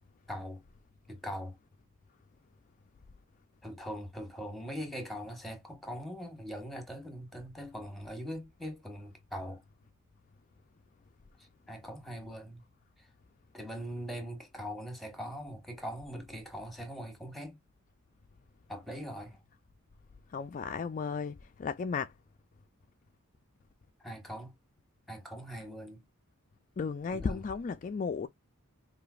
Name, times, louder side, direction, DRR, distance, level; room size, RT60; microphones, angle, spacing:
voice 1, 0.3-0.6 1.1-1.6 3.6-9.6 11.7-12.6 13.5-17.6 18.7-19.4 24.0-24.5 25.1-26.0 27.1-27.4, equal, ahead, 1.3 m, -41 dB
voice 2, 20.3-22.1 26.8-28.3, left 5 dB, 35° left, 0.3 m, -34 dB
5.0 x 2.8 x 2.3 m
head